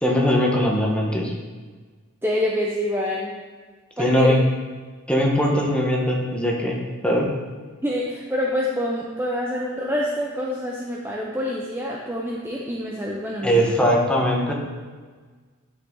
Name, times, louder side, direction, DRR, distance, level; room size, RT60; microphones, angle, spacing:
voice 1, 0.0-1.3 4.0-4.4 5.1-7.3 13.4-14.5, equal, 5° left, -2 dB, 1.3 m, -20 dB
voice 2, 2.2-3.3 4.0-4.4 7.8-13.7, left 1 dB, 10° right, -3 dB, 0.7 m, -26 dB
10.5 x 5.8 x 3.9 m, 1.4 s
head